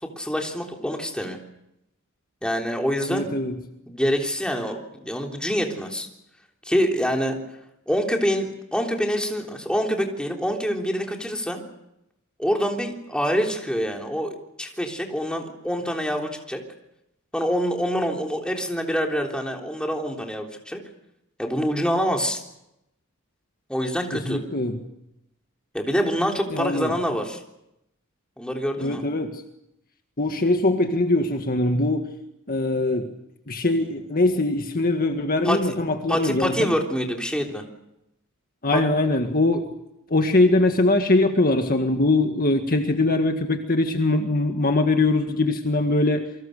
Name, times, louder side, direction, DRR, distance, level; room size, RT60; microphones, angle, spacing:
voice 1, 0.0-1.4 2.4-3.3 3.9-6.1 6.7-7.4 7.9-11.6 12.4-16.6 17.3-20.8 21.4-22.4 23.7-24.4 25.7-27.4 28.4-29.0 35.4-35.7 36.1-37.6 38.7-38.8, equal, 5° left, 1 dB, 3.5 m, -26 dB
voice 2, 3.1-3.5 24.1-24.8 26.5-26.9 28.8-29.4 30.2-32.1 32.5-33.1 33.5-36.8 38.6-39.7 40.1-46.3, left 2 dB, 45° left, 5 dB, 1.8 m, -22 dB
28.5 x 24.5 x 6.7 m, 0.84 s
head